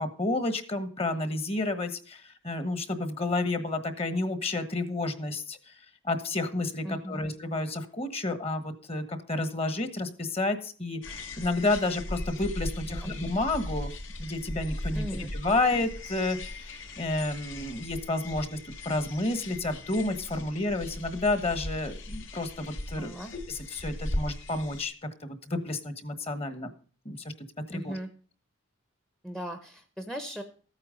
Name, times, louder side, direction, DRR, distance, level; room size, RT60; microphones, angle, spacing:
voice 1, 0.0-5.7 6.0-13.9 14.2-18.6 18.8-23.1 23.5-24.9 25.2-26.7 27.0-27.2 27.7-28.0, left 2 dB, 30° left, 11 dB, 1.3 m, -30 dB
voice 2, 6.8-7.2 12.9-13.1 14.9-15.3 23.0-23.3 27.7-28.1 29.2-30.4, equal, ahead, 7 dB, 0.8 m, -38 dB
sound 1, 11.0-24.8, left 1 dB, 70° left, 1.9 m, -38 dB
14.0 x 8.9 x 5.1 m, 0.42 s
head